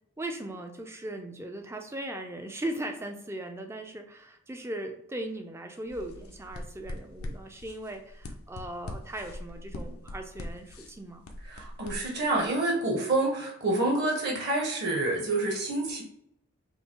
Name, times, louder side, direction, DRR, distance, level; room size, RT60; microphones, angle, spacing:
voice 1, 0.2-11.3, right 1 dB, 10° right, 4 dB, 0.4 m, -38 dB
sound 1, 5.9-12.5, left 1 dB, 90° left, 0.7 m, -42 dB
voice 2, 11.5-16.0, right 2 dB, 45° right, 0 dB, 1.1 m, -28 dB
5.5 x 2.0 x 4.4 m, 0.73 s
head